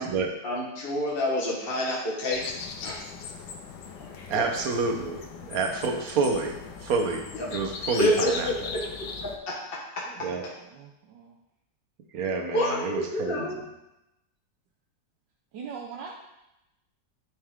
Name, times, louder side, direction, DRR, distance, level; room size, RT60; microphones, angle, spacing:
voice 1, 0.4-2.4 2.8-3.0 4.2-4.5 7.3-7.5 7.9-8.8 9.2-9.6 10.0-10.1 12.5-13.6, left 1 dB, 35° left, -3 dB, 1.2 m, -28 dB
sound 1, 2.3-9.4, left 5 dB, 75° left, 1.4 m, -39 dB
voice 2, 4.3-6.6 6.8-7.2 7.5-8.5 10.2-10.4 12.1-13.5, right 4 dB, 55° right, 3 dB, 1.3 m, -28 dB
voice 3, 10.7-11.3 15.5-16.1, right 6 dB, 75° right, 0 dB, 1.3 m, -41 dB
9.9 x 4.7 x 3.6 m, 0.90 s
omnidirectional pair, 2.0 m